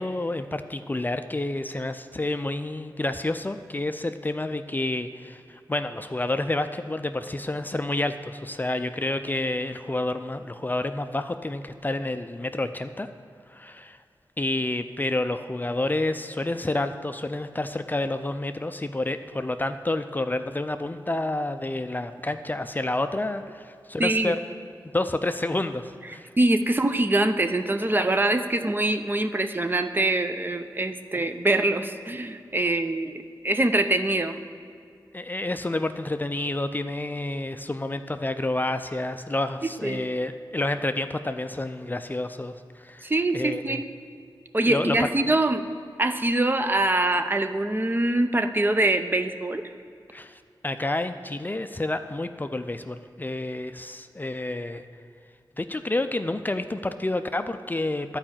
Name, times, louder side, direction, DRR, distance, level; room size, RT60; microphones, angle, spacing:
voice 1, 0.0-13.1 13.5-14.0 14.4-24.4 24.9-26.3 35.1-43.8 44.6-45.1 50.1-54.9 55.6-58.2, left 2 dB, 25° left, 9 dB, 0.4 m, -29 dB
voice 2, 24.0-24.3 26.4-34.4 39.8-40.0 43.0-43.9 44.5-45.6 46.0-49.7, right 2 dB, 25° right, 8 dB, 0.6 m, -24 dB
11.0 x 4.9 x 7.4 m, 2.3 s
wide cardioid pair, 65°, 8 cm